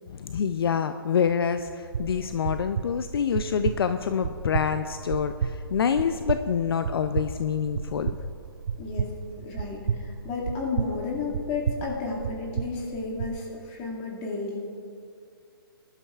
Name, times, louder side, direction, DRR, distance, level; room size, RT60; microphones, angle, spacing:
voice 1, 0.1-8.2, left 7 dB, 70° left, 9 dB, 0.5 m, -26 dB
sound 1, 1.9-13.4, right 6 dB, 55° right, 0.6 m, -33 dB
voice 2, 8.8-9.1 9.4-14.6, left 4 dB, 25° left, -2 dB, 2.1 m, -32 dB
20.0 x 12.0 x 2.4 m, 2.4 s
hypercardioid pair, 155°, 13 cm